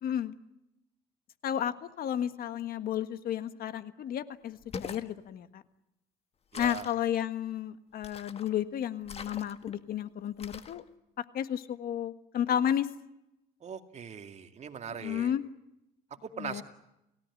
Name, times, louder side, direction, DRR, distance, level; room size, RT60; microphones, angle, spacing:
voice 1, 0.0-0.3 1.4-5.6 6.6-10.8 11.2-12.9 15.0-15.4 16.4-16.6, left 10 dB, 60° left, 11 dB, 1.6 m, -32 dB
sound 1, 4.6-5.1 6.5-7.0 8.0-8.5 9.0-9.8 10.4-10.8, left 6 dB, 35° left, 1.8 m, -43 dB
voice 2, 6.5-6.9 13.6-15.3 16.2-16.6, right 7 dB, 40° right, 7 dB, 2.4 m, -40 dB
29.0 x 17.5 x 9.8 m, 0.88 s
cardioid pair, 110°, 17 cm